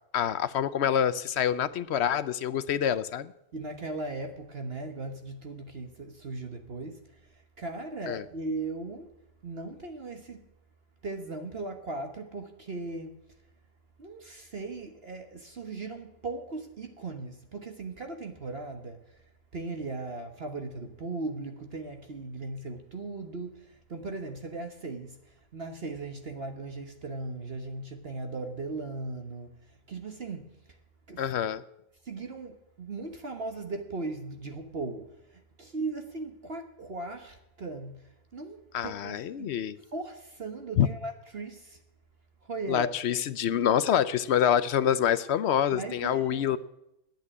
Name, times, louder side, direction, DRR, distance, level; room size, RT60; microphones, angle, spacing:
voice 1, 0.1-3.3 8.1-8.2 31.2-31.6 38.7-39.8 40.8-40.9 42.7-46.6, left 9 dB, 60° left, 0.7 m, -26 dB
voice 2, 3.5-9.1 9.4-10.4 11.0-13.2 14.0-19.2 19.5-30.5 31.1-31.3 32.0-39.6 39.9-41.8 42.4-42.9 45.7-46.6, right 3 dB, 45° right, 1.3 m, -38 dB
10.0 x 9.0 x 9.6 m
omnidirectional pair, 1.6 m